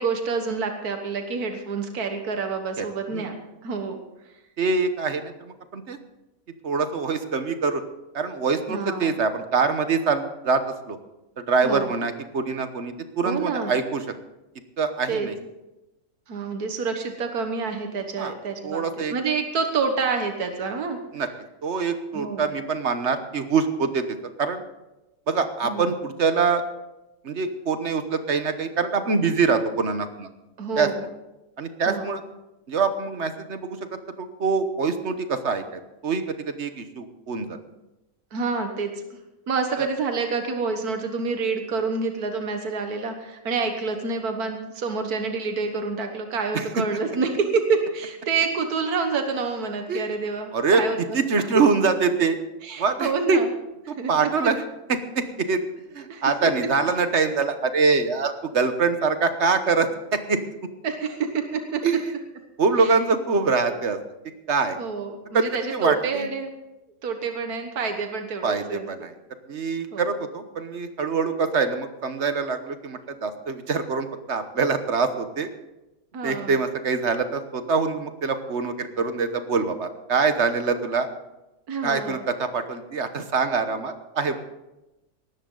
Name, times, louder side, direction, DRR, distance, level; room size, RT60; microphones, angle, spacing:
voice 1, 0.0-4.0 8.7-9.1 11.6-12.0 13.2-13.7 15.1-15.3 16.3-18.8 19.1-21.0 22.1-22.5 25.6-25.9 30.6-31.1 31.9-32.1 38.3-39.0 39.5-51.0 52.6-53.5 54.0-54.3 56.1-56.2 60.8-61.8 62.8-62.9 64.8-66.5 67.0-68.9 69.9-70.1 76.1-76.6 81.7-82.2, right 4 dB, 80° right, 5 dB, 1.9 m, -28 dB
voice 2, 4.6-6.0 6.6-7.8 8.1-10.6 10.9-11.0 11.5-14.0 14.8-15.3 18.2-18.3 18.6-19.1 21.1-21.3 21.6-24.6 25.3-26.6 27.2-30.3 30.8-30.9 31.6-32.2 32.7-33.8 34.2-37.6 39.8-39.9 46.5-46.8 49.9-50.0 50.5-52.4 52.8-53.4 53.9-54.6 54.9-55.6 55.9-60.4 61.8-62.1 62.6-64.0 64.5-64.8 65.3-65.4 65.7-66.3 68.4-69.1 69.5-75.5 76.2-81.1 81.8-84.3, right 4 dB, 50° right, 9 dB, 1.3 m, -24 dB
19.0 x 14.0 x 3.9 m, 0.97 s
omnidirectional pair, 1.6 m